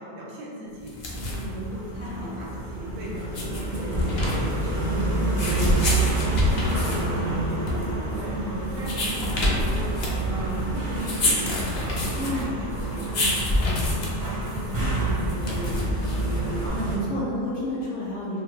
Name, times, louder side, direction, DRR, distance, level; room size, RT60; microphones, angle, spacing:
voice 1, 0.0-4.3 4.7-9.9 10.2-15.8, right 1 dB, 90° right, -4 dB, 1.1 m, -39 dB
sound 1, 0.8-16.7, left 2 dB, 85° left, 0.4 m, -28 dB
sound 2, 1.1-17.0, right 2 dB, 45° right, 0.5 m, -28 dB
voice 2, 1.9-2.3 12.2-12.5 16.4-18.4, left 1 dB, 50° left, -7 dB, 0.8 m, -31 dB
2.5 x 2.0 x 3.1 m, 2.2 s
omnidirectional pair, 1.4 m